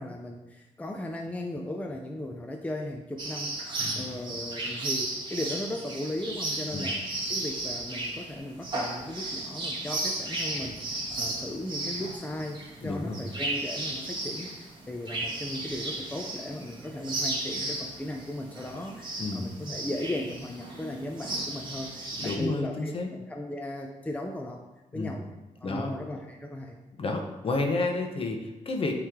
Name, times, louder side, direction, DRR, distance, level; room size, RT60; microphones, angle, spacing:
voice 1, 0.0-7.0 7.3-24.6 24.9-25.2 25.6-26.8, left 1 dB, 10° left, 2 dB, 0.5 m, -37 dB
sound 1, 3.2-22.4, right 2 dB, 35° right, 1.5 m, -34 dB
voice 2, 12.8-13.2 19.2-19.5 22.2-23.1 24.9-25.2 25.6-25.9 27.0-28.9, left 3 dB, 45° left, 3 dB, 0.9 m, -31 dB
9.0 x 3.3 x 3.6 m, 1.1 s
cardioid pair, 110°, 13 cm